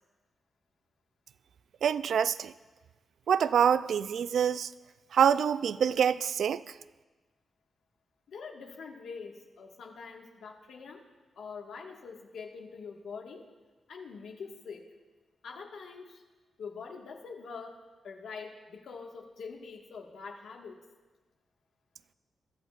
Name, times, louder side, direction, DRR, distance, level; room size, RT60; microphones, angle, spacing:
voice 1, 1.8-2.5 3.3-4.7 5.1-6.6, right 8 dB, 70° right, 0.3 m, -26 dB
voice 2, 8.3-11.0 11.3-13.5 13.9-14.9 15.4-16.2 16.6-17.8 18.0-20.8, left 5 dB, 75° left, 1.6 m, -44 dB
22.0 x 14.0 x 2.4 m
wide cardioid pair, 160°, 0 cm